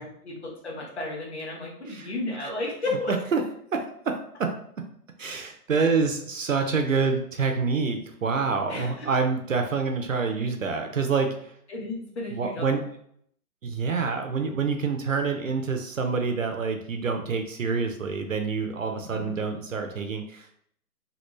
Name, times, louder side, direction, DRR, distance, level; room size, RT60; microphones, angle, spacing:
voice 1, 0.0-3.1 8.7-9.1 11.7-12.7 19.0-19.3, left 2 dB, 45° left, -3 dB, 1.1 m, -33 dB
voice 2, 1.9-2.5 3.1-3.4 3.7-4.5 5.2-11.5 12.3-12.8 13.6-20.6, right 5 dB, 55° right, 5 dB, 0.5 m, -27 dB
3.2 x 2.4 x 3.1 m, 0.68 s
hypercardioid pair, 175°, 47 cm